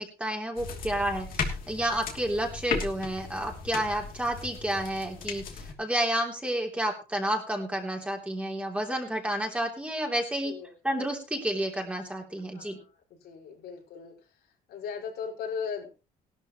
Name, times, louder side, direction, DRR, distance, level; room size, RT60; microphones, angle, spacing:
voice 1, 0.0-10.5 10.8-12.8, right 1 dB, 5° right, 1 dB, 3.2 m, -30 dB
sound 1, 0.6-5.7, left 5 dB, 55° left, 2.9 m, -36 dB
voice 2, 12.5-12.9 13.2-14.1 14.7-15.9, left 6 dB, 75° left, 0 dB, 5.5 m, -37 dB
17.0 x 12.5 x 3.1 m, 0.31 s
cardioid pair, 110°, 17 cm